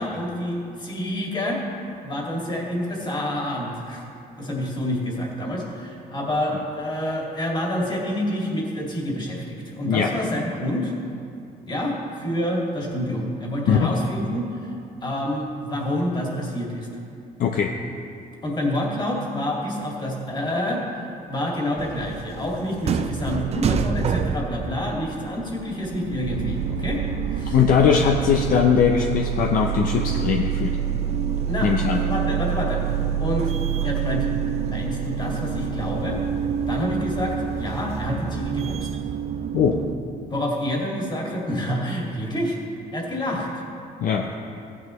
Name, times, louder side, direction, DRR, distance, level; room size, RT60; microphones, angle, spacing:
voice 1, 0.0-1.6 2.0-4.0 4.4-10.9 11.7-14.7 15.0-16.9 18.4-27.0 27.3-27.6 31.5-32.8 33.2-33.5 33.8-34.3 34.6-36.2 36.7-38.9 40.3-42.6 42.9-43.6, left 1 dB, 25° left, -2 dB, 2.2 m, -28 dB
voice 2, 17.4-17.7 27.5-30.8 31.6-32.0 39.5-39.8 44.0-44.3, left 7 dB, 55° left, 2 dB, 0.6 m, -20 dB
sound 1, 21.8-40.0, right 7 dB, 40° right, 0.4 m, -27 dB
15.0 x 9.4 x 3.2 m, 2.5 s
cardioid pair, 110°, 17 cm